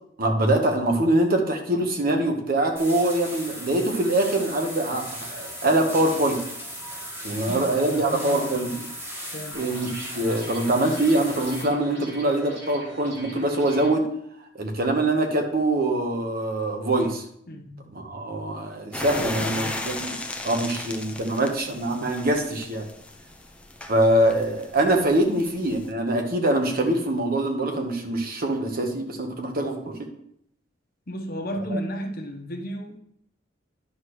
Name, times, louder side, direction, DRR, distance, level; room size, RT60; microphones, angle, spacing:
voice 1, 0.2-6.4 7.2-8.7 9.5-14.0 14.5-17.2 17.9-20.1 20.4-22.8 23.9-29.9 31.7-31.8, right 1 dB, 50° right, 1.2 m, -24 dB
sound 1, 2.8-11.6, equal, 15° right, 1.7 m, -37 dB
voice 2, 7.3-8.7 9.3-9.6 17.5-17.8 19.1-19.8 25.2-25.4 31.1-33.0, equal, 50° left, 1.0 m, -34 dB
sound 2, 9.5-13.9, right 1 dB, 70° right, 2.9 m, -42 dB
sound 3, 18.9-25.9, left 2 dB, 5° left, 0.6 m, -36 dB
10.0 x 6.2 x 3.1 m
head